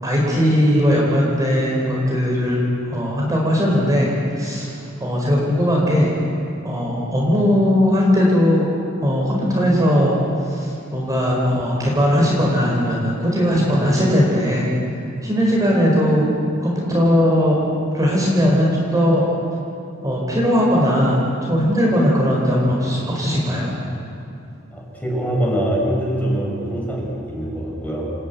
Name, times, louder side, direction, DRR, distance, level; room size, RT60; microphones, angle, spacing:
voice 1, 0.0-4.1 4.4-6.1 6.6-8.6 9.0-10.1 10.5-14.7 15.2-16.3 16.6-17.6 17.9-19.2 20.0-21.2 21.5-23.7, equal, 15° right, -4 dB, 4.6 m, -18 dB
voice 2, 24.7-28.1, right 1 dB, 10° left, -2 dB, 5.9 m, -23 dB
29.0 x 15.0 x 9.5 m, 2.6 s
head